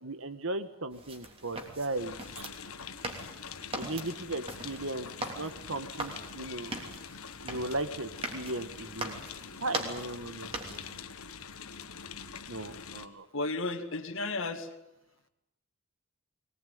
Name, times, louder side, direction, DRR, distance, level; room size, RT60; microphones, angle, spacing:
voice 1, 0.0-2.2 3.7-6.7 7.4-9.2 9.6-10.9 12.5-13.2, right 2 dB, 65° right, 11 dB, 1.7 m, -37 dB
sound 1, 0.9-11.1, right 1 dB, 25° right, 3.2 m, -41 dB
sound 2, 2.0-13.1, left 6 dB, 80° left, 1.5 m, -45 dB
voice 2, 13.3-14.7, left 3 dB, 60° left, 5 dB, 2.2 m, -34 dB
22.5 x 19.5 x 9.5 m, 0.87 s
head